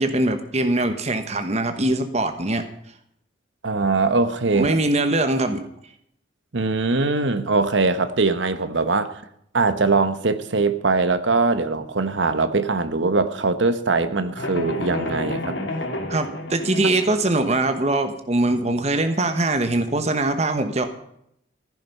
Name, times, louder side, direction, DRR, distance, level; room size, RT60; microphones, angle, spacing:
voice 1, 0.0-2.6 4.5-5.6 16.1-20.9, right 2 dB, 35° right, 7 dB, 1.2 m, -22 dB
voice 2, 3.6-4.7 6.5-9.2 9.5-15.6, right 3 dB, 70° right, 11 dB, 1.1 m, -21 dB
sound 1, 14.4-17.3, left 1 dB, 65° left, 2.6 m, -30 dB
15.5 x 11.5 x 5.5 m, 0.73 s
head